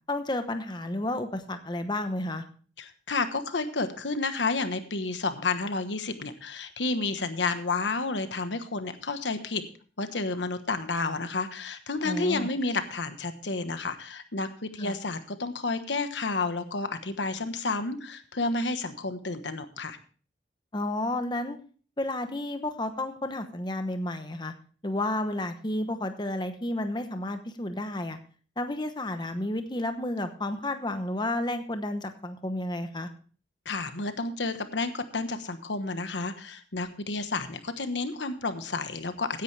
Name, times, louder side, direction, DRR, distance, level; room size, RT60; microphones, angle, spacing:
voice 1, 0.1-2.4 12.0-12.5 14.8-15.0 20.7-21.6 22.0-24.5 24.8-28.2 28.6-33.1, left 1 dB, 25° left, 8 dB, 1.0 m, -31 dB
voice 2, 2.8-9.6 10.0-20.0 33.6-39.4, left 3 dB, 85° left, 9 dB, 1.2 m, -31 dB
16.0 x 10.5 x 3.4 m, 0.41 s
head